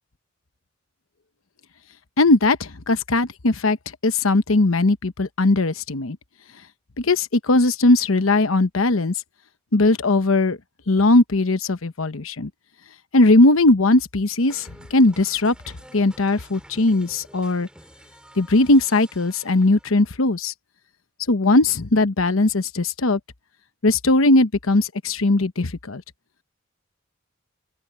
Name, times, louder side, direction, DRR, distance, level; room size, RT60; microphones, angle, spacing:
voice 1, 2.2-3.8 4.0-6.2 7.0-9.1 9.7-10.6 10.9-12.5 13.1-14.7 14.9-15.5 15.9-17.7 18.4-20.5 21.3-23.2 23.8-26.0, left 2 dB, 85° left, 1.0 m, -19 dB
An Eracist Drum Kit Live Loop - Nova Sound, 14.5-20.2, right 1 dB, 5° right, 5.0 m, -49 dB
open air
head